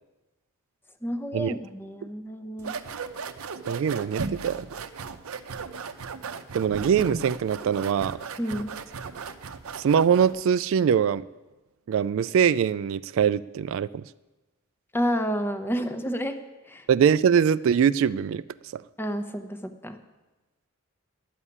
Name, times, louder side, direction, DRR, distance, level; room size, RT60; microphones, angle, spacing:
voice 1, 1.0-2.8 8.4-8.7 14.9-16.4 16.7-16.8 19.0-20.0, equal, 10° left, 8 dB, 0.8 m, -30 dB
sound 1, 2.6-10.4, right 5 dB, 85° right, 0.7 m, -36 dB
voice 2, 3.7-4.7 6.5-8.2 9.8-11.2 11.9-14.0 16.9-18.4 18.7-18.8, right 7 dB, 65° right, 17 dB, 0.3 m, -23 dB
11.0 x 7.2 x 9.7 m, 1.1 s
head